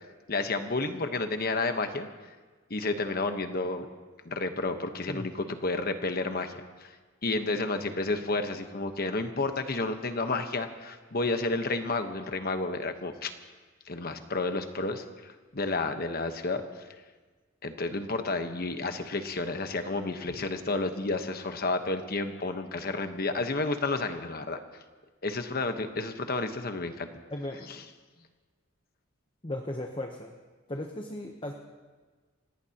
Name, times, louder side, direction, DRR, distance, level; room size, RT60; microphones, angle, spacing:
voice 1, 0.3-2.1 2.7-3.8 4.2-6.5 6.8-6.9 7.2-13.3 13.9-16.6 17.6-24.6 25.2-27.1, left 3 dB, 50° left, 7 dB, 1.2 m, -31 dB
voice 2, 27.3-27.9 29.4-30.3 30.7-31.5, left 1 dB, 25° left, 3 dB, 0.9 m, -36 dB
28.0 x 17.5 x 2.9 m, 1.4 s
head